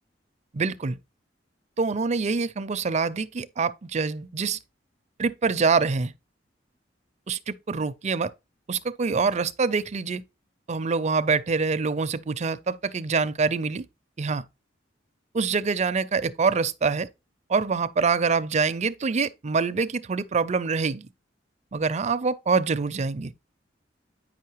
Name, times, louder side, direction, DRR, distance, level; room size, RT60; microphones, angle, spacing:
voice 1, 0.5-1.0 1.8-4.6 5.2-6.1 7.3-8.3 8.7-10.2 10.7-13.9 14.2-14.4 15.3-17.1 17.5-21.1 21.7-23.3, right 4 dB, 40° right, 0.5 m, -25 dB
8.8 x 5.6 x 3.0 m
head